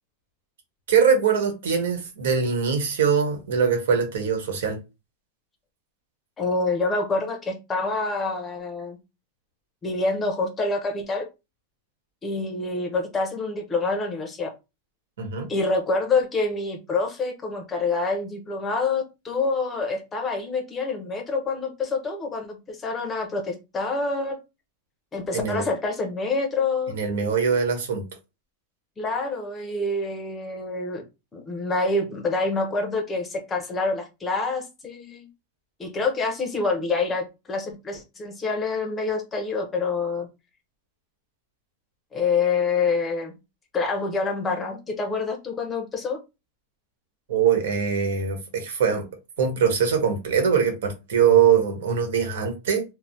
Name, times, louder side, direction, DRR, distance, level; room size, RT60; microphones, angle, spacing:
voice 1, 0.9-4.8 15.2-15.5 25.3-25.7 26.9-28.0 47.3-49.0 49.4-52.8, right 7 dB, 85° right, 1.1 m, -22 dB
voice 2, 6.4-9.0 9.8-11.3 12.2-14.5 15.5-24.4 25.1-26.9 29.0-31.0 31.3-35.3 35.8-40.3 42.1-43.3 43.7-46.2, left 3 dB, 15° left, 0.6 m, -27 dB
3.1 x 2.0 x 2.7 m
supercardioid pair, 170°, 0 cm